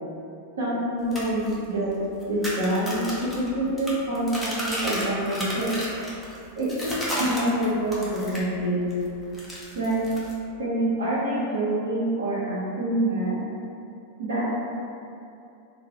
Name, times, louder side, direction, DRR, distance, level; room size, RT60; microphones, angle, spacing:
voice 1, 0.6-1.9 2.3-5.7 6.6-8.9 9.7-10.0 10.6-13.4 14.2-14.5, right 1 dB, 70° right, -9 dB, 0.8 m, -26 dB
sound 1, 1.0-8.5 8.9-10.4, equal, 5° left, 0.7 m, -33 dB
2.4 x 2.1 x 3.5 m, 2.6 s
figure-of-eight pair, 90°, 0 cm